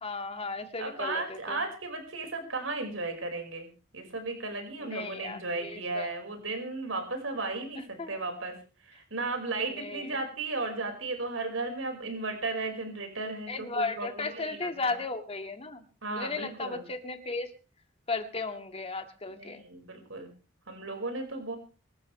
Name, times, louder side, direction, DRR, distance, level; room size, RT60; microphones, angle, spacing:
voice 1, 0.0-1.6 4.8-6.1 8.0-8.2 9.7-10.1 13.5-15.8 16.1-17.5 18.1-19.6, left 3 dB, 30° left, 6 dB, 2.0 m, -35 dB
voice 2, 0.8-3.7 3.9-8.6 8.8-15.0 16.0-16.9 19.3-20.3 20.7-21.6, right 3 dB, 85° right, 4 dB, 5.2 m, -35 dB
25.5 x 13.0 x 3.3 m, 0.35 s
head